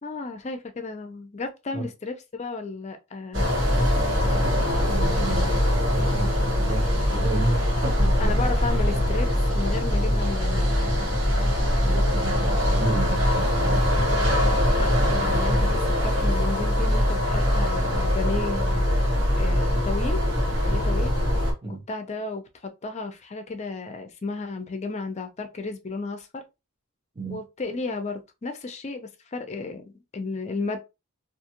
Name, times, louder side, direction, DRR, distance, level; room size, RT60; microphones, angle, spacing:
voice 1, 0.0-3.5 8.2-9.3 9.5-10.7 14.8-20.2 20.6-21.2 21.6-26.4 27.3-30.8, left 3 dB, 30° left, 0.4 m, -33 dB
sound 1, 3.3-21.5, equal, 65° right, 1.3 m, -22 dB
voice 2, 4.2-8.4 11.8-13.9 21.6-21.8 27.2-27.4, right 3 dB, 25° right, 0.8 m, -33 dB
2.5 x 2.3 x 2.9 m
head